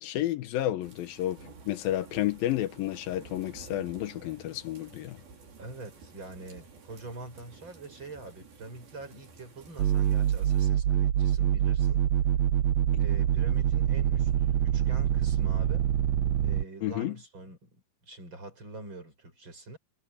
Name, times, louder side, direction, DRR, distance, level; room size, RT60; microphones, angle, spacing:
voice 1, 0.0-5.2 16.8-17.2, left 13 dB, 80° left, 2.8 m, -31 dB
sound 1, 0.8-10.7, right 4 dB, 90° right, 7.2 m, -52 dB
voice 2, 5.6-12.0 13.0-15.9 16.4-19.8, right 2 dB, 30° right, 7.6 m, -44 dB
sound 2, 9.8-16.6, right 10 dB, 70° right, 1.6 m, -25 dB
omnidirectional pair, 4.1 m